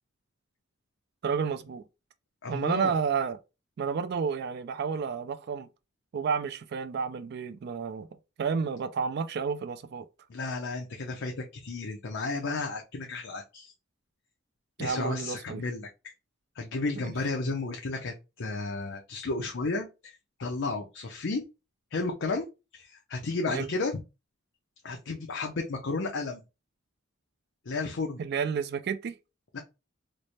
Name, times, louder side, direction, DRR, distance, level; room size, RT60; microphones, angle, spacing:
voice 1, 1.2-1.8 2.5-3.4 3.8-5.7 6.1-8.1 8.4-10.1 14.8-15.6 17.0-17.1 23.5-23.7 28.2-29.2, right 6 dB, 55° right, 0.3 m, -31 dB
voice 2, 2.4-2.9 10.3-13.7 14.8-16.1 16.6-20.1 20.4-21.4 21.9-22.5 22.7-24.0 24.8-26.4 27.7-28.2 29.5-29.6, left 3 dB, 60° left, 0.6 m, -33 dB
3.2 x 2.1 x 4.0 m
head